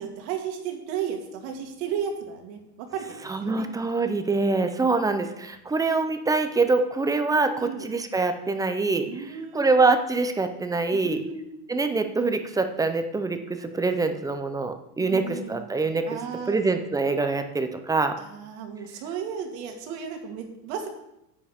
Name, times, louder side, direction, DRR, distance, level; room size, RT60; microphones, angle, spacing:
voice 1, 0.0-3.7 7.6-7.9 9.0-9.8 10.9-11.5 15.0-15.7 16.1-16.6 18.2-20.9, right 7 dB, 60° right, 3 dB, 2.1 m, -34 dB
voice 2, 3.3-9.1 9.5-11.2 11.7-16.2 16.5-18.2, right 3 dB, 10° right, 7 dB, 0.5 m, -24 dB
9.9 x 8.6 x 3.5 m, 0.84 s
supercardioid pair, 130°, 46 cm